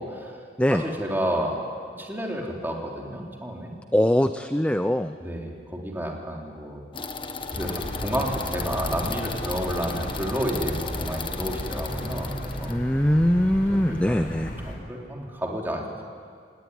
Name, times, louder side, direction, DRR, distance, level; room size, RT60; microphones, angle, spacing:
voice 1, 0.0-0.4 0.7-1.6 2.0-3.7 5.2-6.8 7.5-12.8 13.9-14.4 14.6-16.0, equal, 10° right, 0 dB, 3.6 m, -31 dB
voice 2, 3.9-5.1 12.7-14.6, equal, 5° left, 9 dB, 0.6 m, -22 dB
sound 1, 6.9-12.7, left 4 dB, 30° left, 1.4 m, -35 dB
sound 2, 7.5-14.8, equal, 50° left, 5.1 m, -34 dB
28.5 x 17.5 x 10.0 m, 2.2 s
head